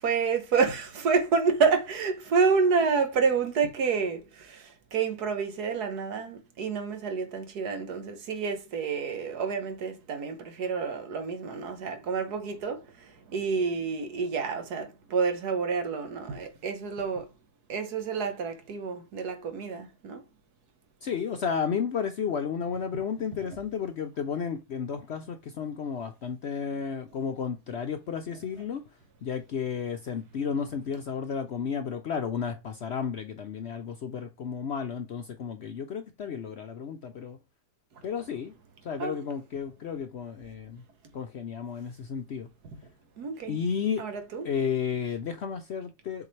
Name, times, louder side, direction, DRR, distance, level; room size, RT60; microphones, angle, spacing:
voice 1, 0.0-17.3 17.7-20.2 39.0-39.2 42.6-42.8 43.2-43.6 44.0-44.5, right 5 dB, 75° right, 1.7 m, -28 dB
voice 2, 21.0-28.8 29.2-37.4 38.0-38.5 38.8-40.8 41.1-42.5 43.5-44.0 44.4-46.3, left 7 dB, 60° left, 0.7 m, -32 dB
7.2 x 4.5 x 3.2 m
omnidirectional pair, 1.7 m